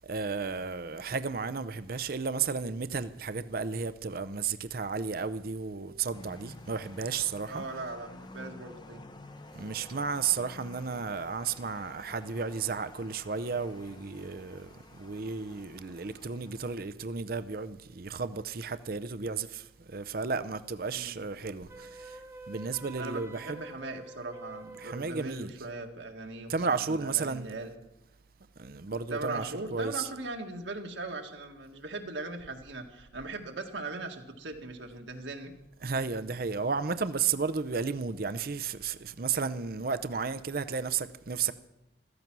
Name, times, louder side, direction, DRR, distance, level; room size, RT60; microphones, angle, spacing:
voice 1, 0.0-7.8 9.5-23.6 24.8-25.5 26.5-27.5 28.6-30.1 35.8-41.5, right 5 dB, 50° right, 0.6 m, -33 dB
sound 1, 6.1-16.8, left 2 dB, 25° left, 0.8 m, -51 dB
voice 2, 7.5-9.0 20.9-21.2 23.0-27.7 29.1-35.5, right 2 dB, 80° right, 1.9 m, -39 dB
Wind instrument woodwind instrument, 21.7-25.1, right 2 dB, 15° right, 1.0 m, -47 dB
14.5 x 14.0 x 6.1 m
head